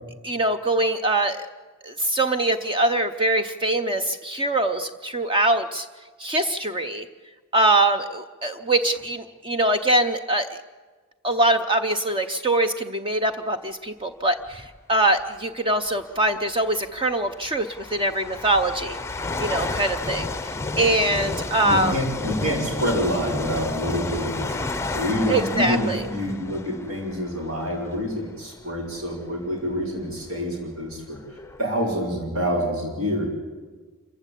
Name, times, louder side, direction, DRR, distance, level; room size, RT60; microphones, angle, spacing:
voice 1, 0.2-1.5 1.8-5.9 6.2-7.1 7.5-10.6 11.2-19.0 19.4-20.3 20.8-22.0 25.3-26.0, right 1 dB, 25° right, 8 dB, 0.7 m, -23 dB
sound 1, 14.5-14.8 15.9-16.0 16.7-28.1 28.8-28.9 29.7-29.8 30.0-31.6, left 3 dB, 15° left, 0.7 m, -32 dB
voice 2, 21.6-33.3, equal, 75° right, -1 dB, 4.7 m, -27 dB
27.0 x 15.5 x 8.4 m, 1.4 s
head